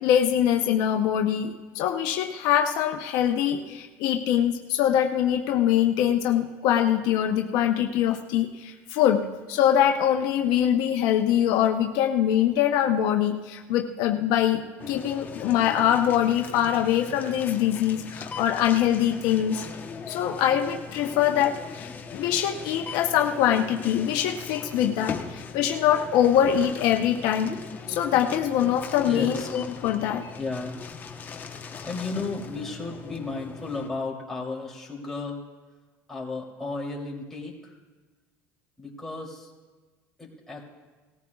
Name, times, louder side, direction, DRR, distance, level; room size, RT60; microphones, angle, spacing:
voice 1, 0.0-14.6 14.9-19.6 20.1-27.5 27.9-30.2, left 10 dB, 70° left, 4 dB, 0.8 m, -23 dB
sound 1, 14.8-33.9, left 5 dB, 25° left, 1.0 m, -39 dB
voice 2, 29.0-29.6 30.4-30.9 31.8-35.4 36.1-37.8 38.8-39.5 40.2-40.7, left 3 dB, 5° left, -4 dB, 3.0 m, -34 dB
18.5 x 14.5 x 2.4 m, 1.3 s
cardioid pair, 130°, 7 cm